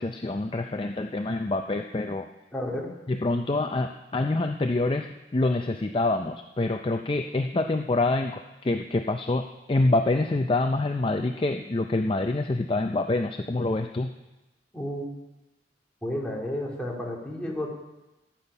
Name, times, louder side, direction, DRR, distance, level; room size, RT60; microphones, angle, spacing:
voice 1, 0.0-2.3 3.1-14.1, left 2 dB, 30° left, 6 dB, 0.4 m, -26 dB
voice 2, 2.5-2.9 14.7-15.1 16.0-17.7, left 1 dB, 5° left, -3 dB, 2.4 m, -31 dB
15.0 x 8.8 x 5.5 m, 1.0 s
head